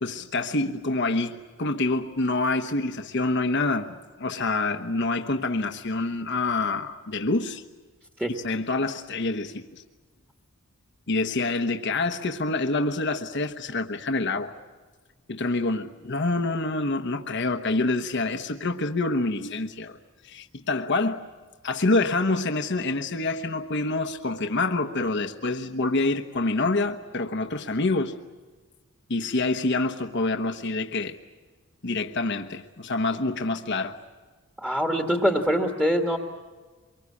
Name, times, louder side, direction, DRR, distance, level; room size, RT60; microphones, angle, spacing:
voice 1, 0.0-7.6 8.3-9.7 11.1-14.5 15.3-20.0 20.2-21.2 21.6-28.1 29.1-31.2 31.8-34.0, left 2 dB, 55° left, 1.1 m, -26 dB
voice 2, 34.6-36.2, equal, 5° right, 1.6 m, -23 dB
25.0 x 23.5 x 8.5 m
head